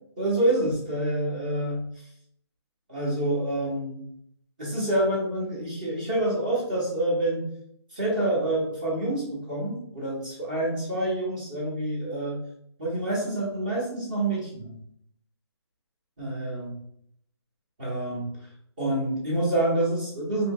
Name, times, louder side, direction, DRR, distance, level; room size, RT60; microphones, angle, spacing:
voice 1, 0.2-1.8 2.9-4.1 4.6-7.5 7.9-12.4 12.8-14.8 16.2-16.8 17.8-18.3 18.8-20.5, right 1 dB, 20° right, -6 dB, 0.8 m, -27 dB
4.2 x 2.7 x 2.2 m, 0.69 s
hypercardioid pair, 180°, 14 cm